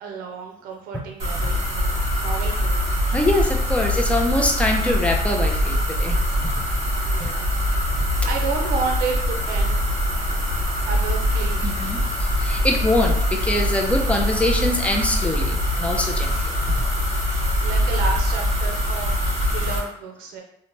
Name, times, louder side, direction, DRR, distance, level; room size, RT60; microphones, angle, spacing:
voice 1, 0.0-2.8 7.0-9.8 10.9-11.6 17.6-20.4, right 5 dB, 85° right, 1 dB, 0.5 m, -31 dB
sound 1, 1.2-19.8, equal, 50° right, 1.4 m, -23 dB
voice 2, 3.1-6.2 6.4-6.5 7.2-7.3 11.6-16.4, left 1 dB, 10° left, 1 dB, 0.4 m, -24 dB
2.7 x 2.1 x 2.9 m, 0.74 s
cardioid pair, 125°, 15 cm